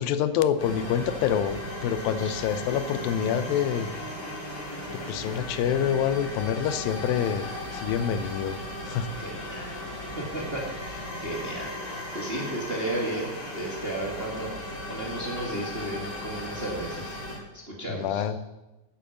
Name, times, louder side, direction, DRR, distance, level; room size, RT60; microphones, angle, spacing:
voice 1, 0.0-3.9 4.9-8.6 8.9-9.1 17.9-18.4, left 8 dB, 85° left, 12 dB, 2.5 m, -27 dB
sound 1, 0.6-17.4, left 1 dB, 25° left, 3.5 m, -37 dB
voice 2, 9.1-9.7 10.2-11.7 12.1-14.5 14.9-17.2 17.5-18.2, right 1 dB, 25° right, -2 dB, 1.3 m, -34 dB
10.0 x 9.6 x 7.0 m, 1.0 s
omnidirectional pair, 4.0 m